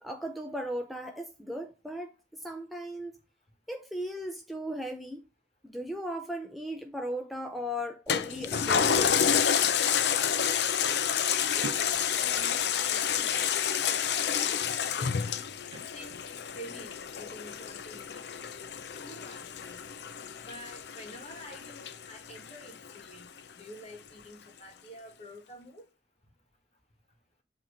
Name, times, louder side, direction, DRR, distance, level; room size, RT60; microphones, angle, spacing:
voice 1, 0.0-3.2 3.7-5.2 5.6-9.3 20.4-20.5, equal, ahead, 0.5 m, -37 dB
Toilet flush, 8.1-22.9 23.4-23.5, left 8 dB, 65° left, 0.5 m, -29 dB
voice 2, 11.3-13.5 13.8-14.6 15.0-18.2 19.0-19.8 20.4-25.9, equal, 35° left, 1.8 m, -49 dB
sound 1, 11.6-12.1 14.7-16.0 16.6-16.7, right 3 dB, 80° right, 0.5 m, -45 dB
7.6 x 3.1 x 4.9 m
head